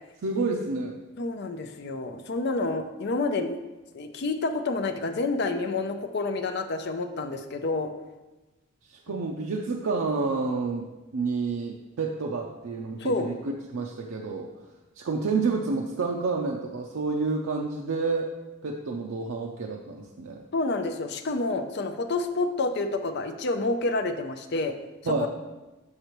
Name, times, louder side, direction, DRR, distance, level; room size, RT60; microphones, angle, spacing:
voice 1, 0.2-1.0 9.1-13.3 13.7-14.5 15.0-18.3 18.6-20.4 25.1-25.3, right 4 dB, 90° right, 1 dB, 0.5 m, -29 dB
voice 2, 1.2-3.6 3.9-7.9 9.1-9.2 13.0-13.3 20.5-24.7 25.0-25.3, left 3 dB, 55° left, 7 dB, 0.5 m, -28 dB
6.5 x 5.5 x 3.0 m, 1.1 s
head